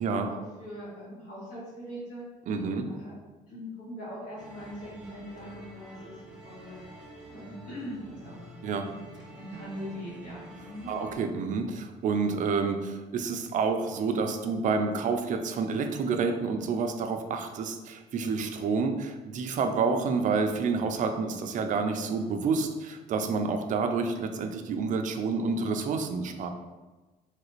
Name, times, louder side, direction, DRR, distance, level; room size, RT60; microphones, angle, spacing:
voice 1, 0.0-2.2 2.8-3.1 3.5-6.8 7.3-8.4 9.3-10.9, equal, 60° left, -11 dB, 1.2 m, -41 dB
voice 2, 2.5-2.9 8.6-8.9 10.9-26.5, right 4 dB, 50° right, 6 dB, 0.4 m, -29 dB
sound 1, 4.4-11.2, equal, 5° right, 0.7 m, -48 dB
3.1 x 2.4 x 3.0 m, 1.2 s
cardioid pair, 110°, 17 cm